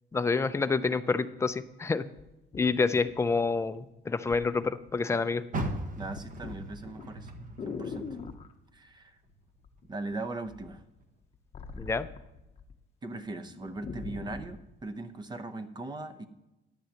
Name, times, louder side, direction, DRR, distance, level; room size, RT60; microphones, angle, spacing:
voice 1, 0.1-2.0 2.5-5.4 11.8-12.1, left 4 dB, 15° left, 10 dB, 0.4 m, -28 dB
sound 1, 2.2-3.7 4.3-4.5 4.9-5.3 5.6-8.5 9.6-10.1 10.5-12.7 13.1-13.2 13.5-14.6 15.3-15.4, left 5 dB, 30° left, 0.8 m, -42 dB
Car, 5.5-8.8 9.2-10.5 11.0-11.1 11.7-11.8, right 1 dB, 40° right, 1.3 m, -38 dB
voice 2, 6.0-7.3 7.7-8.2 8.7-9.2 9.9-10.8 13.0-16.3, right 2 dB, 20° right, 10 dB, 0.7 m, -39 dB
14.0 x 10.5 x 2.9 m, 0.94 s
cardioid pair, 155°, 21 cm